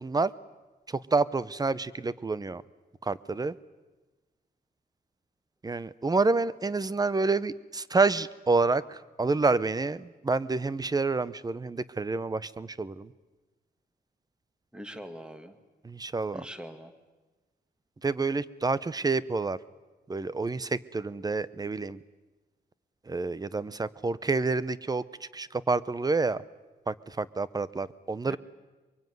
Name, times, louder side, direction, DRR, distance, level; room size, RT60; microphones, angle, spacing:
voice 1, 0.0-0.3 0.9-2.6 3.0-3.6 5.6-13.1 15.8-16.4 18.0-19.6 20.1-22.0 23.1-26.4 26.9-28.4, right 3 dB, 20° right, 18 dB, 0.9 m, -28 dB
voice 2, 14.7-15.6 16.3-16.9 28.2-28.4, equal, 5° right, 9 dB, 2.1 m, -42 dB
24.0 x 23.0 x 9.5 m, 1.2 s
cardioid pair, 110°, 17 cm